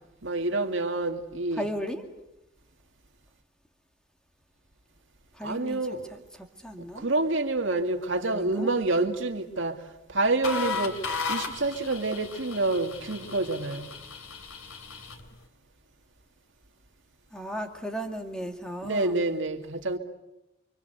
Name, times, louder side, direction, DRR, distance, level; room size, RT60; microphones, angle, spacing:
voice 1, 0.2-1.7 5.4-6.2 6.9-13.9 18.8-20.0, right 2 dB, 65° right, 2.3 m, -28 dB
voice 2, 1.6-2.1 5.3-5.8 6.1-7.1 8.3-8.7 17.3-19.2, equal, 5° left, 2.2 m, -36 dB
sound 1, 10.4-15.3, left 5 dB, 75° left, 2.8 m, -35 dB
29.5 x 24.5 x 8.2 m
head